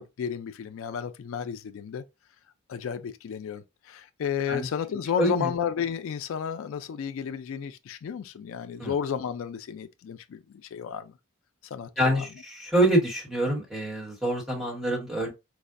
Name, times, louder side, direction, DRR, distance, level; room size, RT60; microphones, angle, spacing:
voice 1, 0.0-2.0 2.7-11.1 11.7-12.2, left 8 dB, 75° left, 0.3 m, -32 dB
voice 2, 5.2-5.5 8.8-8.9 12.0-15.3, right 1 dB, ahead, 1.0 m, -26 dB
4.6 x 2.1 x 2.5 m
head